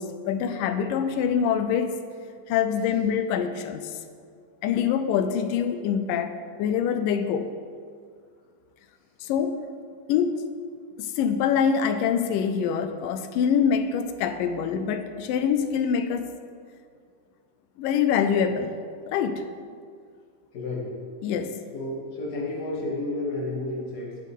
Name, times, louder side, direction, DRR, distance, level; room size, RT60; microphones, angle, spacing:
voice 1, 0.0-2.0 2.5-4.0 4.6-7.6 9.2-9.6 10.1-10.5 11.0-16.3 17.8-18.8 19.1-19.5 21.2-21.6, left 7 dB, 90° left, 9 dB, 2.3 m, -25 dB
voice 2, 20.5-20.9 21.7-24.2, left 2 dB, 35° left, -4 dB, 2.3 m, -31 dB
19.5 x 7.7 x 3.7 m, 2.1 s
omnidirectional pair, 3.8 m